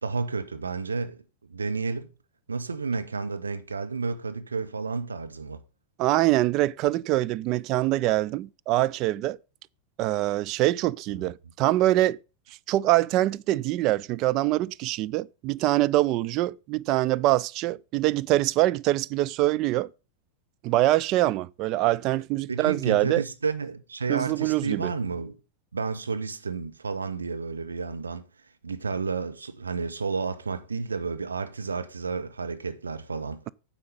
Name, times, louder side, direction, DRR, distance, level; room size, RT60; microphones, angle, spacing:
voice 1, 0.0-1.2 1.5-2.1 2.5-5.6 11.2-11.3 22.5-25.4 25.7-28.3 28.6-33.4, right 4 dB, 75° right, 1.1 m, -31 dB
voice 2, 6.0-9.4 10.0-12.2 12.7-19.9 20.6-23.2 24.1-24.9, right 16 dB, 40° right, 0.4 m, -24 dB
9.5 x 7.1 x 5.4 m
figure-of-eight pair, 90°, 0 cm